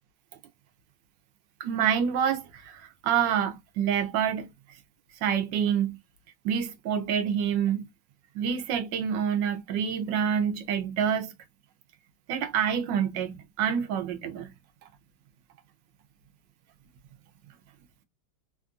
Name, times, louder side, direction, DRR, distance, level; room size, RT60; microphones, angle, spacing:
voice 1, 1.6-4.5 5.2-6.0 6.4-7.9 8.3-11.3 12.3-14.5, right 8 dB, 70° right, 1.3 m, -27 dB
3.5 x 2.5 x 2.3 m
omnidirectional pair, 2.2 m